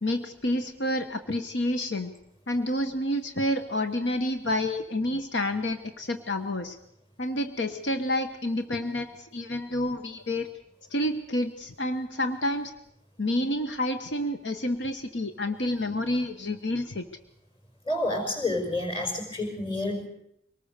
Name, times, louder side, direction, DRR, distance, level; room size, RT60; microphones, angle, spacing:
voice 1, 0.0-2.1 2.5-6.8 7.2-10.5 10.9-12.7 13.2-17.1, left 1 dB, 80° left, 8 dB, 1.3 m, -29 dB
voice 2, 17.9-20.1, left 2 dB, 25° left, 3 dB, 5.5 m, -29 dB
24.0 x 19.5 x 6.8 m, 0.77 s
head